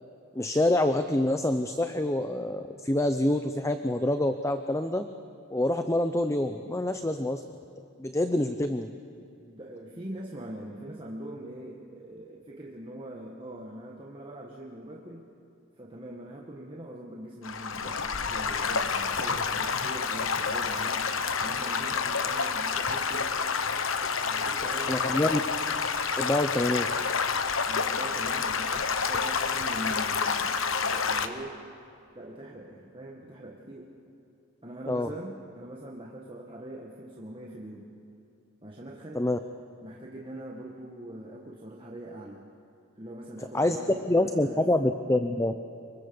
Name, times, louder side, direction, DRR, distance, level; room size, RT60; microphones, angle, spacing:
voice 1, 0.3-5.1 5.5-7.4 8.0-8.9 24.9-25.4 26.2-26.9 34.9-35.1 39.1-39.4 43.5-43.8 44.1-45.5, left 1 dB, 15° left, 8 dB, 0.7 m, -26 dB
voice 2, 9.4-15.2 15.8-21.1 21.4-23.4 24.2-25.3 27.7-31.6 32.1-33.9 34.6-37.9 38.6-39.2 39.8-42.4 43.0-44.6, right 1 dB, 25° right, -2 dB, 1.8 m, -42 dB
Stream / Gurgling / Trickle dribble, 17.4-31.3, left 5 dB, 70° left, 1.2 m, -29 dB
24.5 x 24.0 x 7.1 m, 2.7 s
head